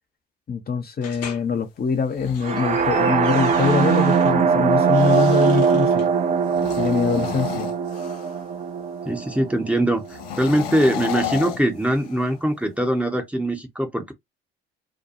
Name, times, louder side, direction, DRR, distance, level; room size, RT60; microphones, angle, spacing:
voice 1, 0.5-6.1 6.8-7.7, left 5 dB, 30° left, 0.7 m, -23 dB
sound 1, 1.0-1.4 2.1-4.3 4.8-6.1, left 7 dB, 50° left, 1.0 m, -41 dB
sound 2, 1.9-5.7 6.4-8.5 10.1-12.4, left 9 dB, 75° left, 0.5 m, -34 dB
sound 3, 2.4-10.3, right 6 dB, 25° right, 0.5 m, -21 dB
voice 2, 9.1-10.0 10.4-14.1, right 1 dB, 5° right, 0.8 m, -22 dB
2.8 x 2.2 x 2.5 m
figure-of-eight pair, 50°, 31 cm